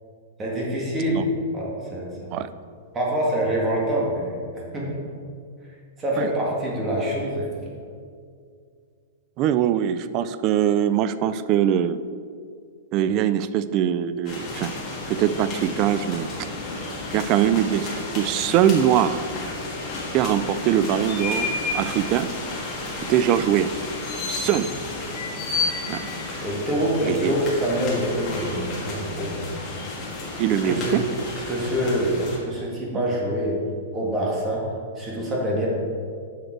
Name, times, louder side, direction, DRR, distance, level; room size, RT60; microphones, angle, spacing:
voice 1, 0.4-1.2 1.5-2.3 2.9-4.4 4.7-5.0 6.0-7.5 26.4-29.5 30.6-31.0 31.5-33.6 33.9-34.6 35.0-35.7, right 1 dB, 15° right, -3 dB, 1.8 m, -25 dB
voice 2, 9.4-12.0 12.9-14.7 15.1-16.5 17.1-19.2 20.1-22.3 23.1-23.7 24.2-24.7 25.9-26.1 27.1-27.3 30.4-31.0, right 10 dB, 35° right, 13 dB, 0.3 m, -22 dB
sound 1, 14.2-32.4, left 3 dB, 25° left, 1.6 m, -32 dB
6.5 x 6.4 x 4.6 m, 2.2 s
hypercardioid pair, 155°, 0 cm